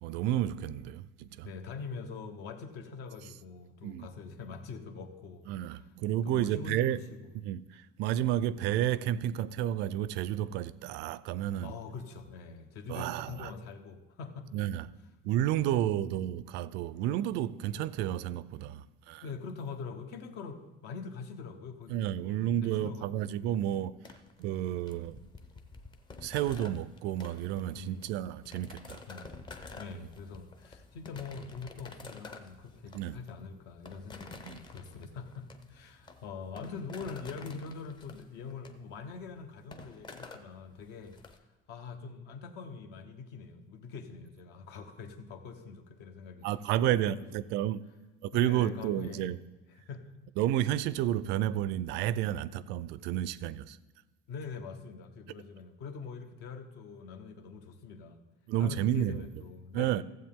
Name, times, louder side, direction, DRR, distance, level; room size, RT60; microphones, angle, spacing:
voice 1, 0.0-1.5 3.8-4.1 5.5-7.0 7.3-11.8 12.9-13.5 14.5-14.9 15.2-19.2 21.9-24.0 24.4-25.3 26.2-29.0 29.9-30.1 32.9-33.2 34.5-34.6 46.4-47.8 48.2-49.4 50.4-53.8 58.5-59.3 59.7-60.0, right 12 dB, 70° right, 0.4 m, -31 dB
voice 2, 1.4-5.5 6.2-7.0 11.6-14.5 15.6-16.1 19.2-21.9 22.3-23.8 27.7-28.2 29.1-29.3 29.8-41.2 41.7-46.5 46.8-47.3 48.3-49.4 49.8-50.1 54.3-58.2 58.6-60.0, left 5 dB, 65° left, 1.0 m, -44 dB
sound 1, 24.0-41.4, left 3 dB, 25° left, 0.7 m, -50 dB
15.0 x 7.6 x 3.7 m
cardioid pair, 160°, 19 cm